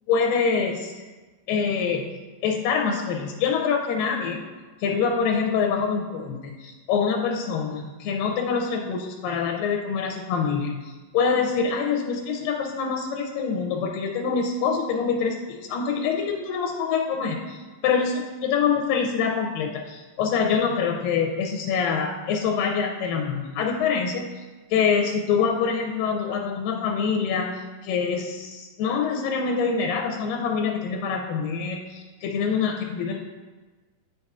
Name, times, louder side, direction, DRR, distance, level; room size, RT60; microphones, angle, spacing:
voice 1, 0.1-1.0 1.5-2.1 2.4-4.4 4.8-24.4 24.7-33.1, left 6 dB, 85° left, 1 dB, 2.2 m, -25 dB
9.6 x 5.4 x 2.3 m, 1.3 s
omnidirectional pair, 4.0 m